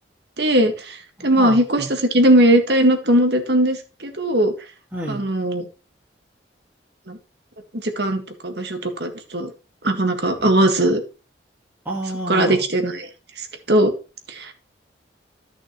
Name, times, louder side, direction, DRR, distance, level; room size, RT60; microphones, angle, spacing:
voice 1, 0.4-1.0 1.2-4.5 5.1-5.6 7.1-7.2 7.7-9.5 9.8-11.0 12.3-13.1 13.4-13.9 14.3-14.5, right 1 dB, 60° right, 6 dB, 1.8 m, -19 dB
voice 2, 1.2-1.9 4.9-5.2 11.9-12.6, right 1 dB, 10° right, -4 dB, 2.2 m, -29 dB
14.0 x 6.2 x 3.1 m, 0.32 s
head